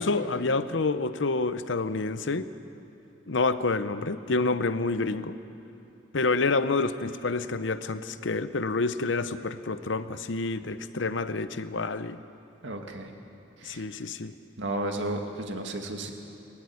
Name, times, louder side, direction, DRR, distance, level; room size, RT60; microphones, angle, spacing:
voice 1, 0.0-2.5 3.3-5.3 6.1-12.2 13.6-14.3, left 3 dB, 80° left, 12 dB, 0.8 m, -28 dB
voice 2, 12.6-13.1 13.6-13.8 14.6-16.1, right 1 dB, 75° right, 3 dB, 2.1 m, -33 dB
20.0 x 15.0 x 9.6 m, 2.9 s
head